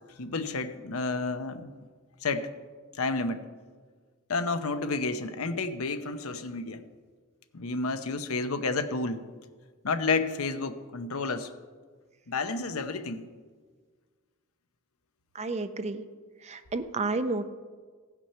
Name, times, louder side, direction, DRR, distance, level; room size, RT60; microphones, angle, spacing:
voice 1, 0.2-1.7 2.2-2.5 3.0-3.4 4.3-6.8 7.5-9.2 9.8-11.5 12.3-13.3, left 3 dB, 80° left, 9 dB, 0.8 m, -30 dB
voice 2, 15.3-16.1 16.4-17.5, right 3 dB, 30° right, 10 dB, 0.6 m, -31 dB
16.0 x 6.1 x 5.6 m, 1.5 s
head